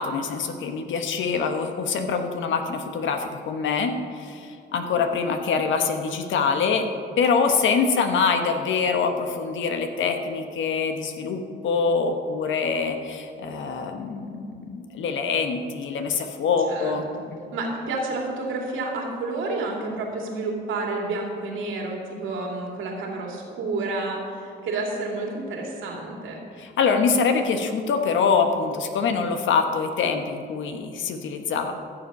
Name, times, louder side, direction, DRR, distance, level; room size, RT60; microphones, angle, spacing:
voice 1, 0.0-6.9 7.2-17.4 26.6-31.7, left 5 dB, 75° left, 6 dB, 1.2 m, -24 dB
voice 2, 17.5-26.4, right 3 dB, 80° right, 0 dB, 2.5 m, -30 dB
14.0 x 7.0 x 5.4 m, 2.3 s
cardioid pair, 90°, 20 cm